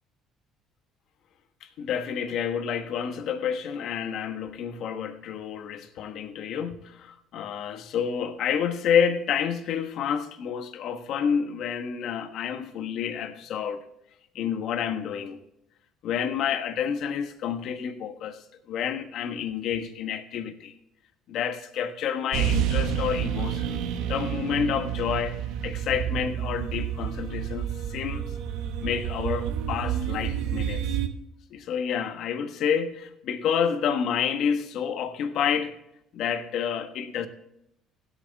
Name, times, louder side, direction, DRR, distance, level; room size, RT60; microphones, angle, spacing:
voice 1, 1.8-13.8 14.3-15.4 16.0-18.4 18.7-20.7 21.3-23.8 24.1-28.3 28.8-30.9 31.5-35.7 36.1-37.3, left 7 dB, 65° left, 1.3 m, -29 dB
sound 1, 22.3-31.1, right 9 dB, 80° right, 1.1 m, -29 dB
16.5 x 8.4 x 3.5 m
supercardioid pair, 85°, 0 cm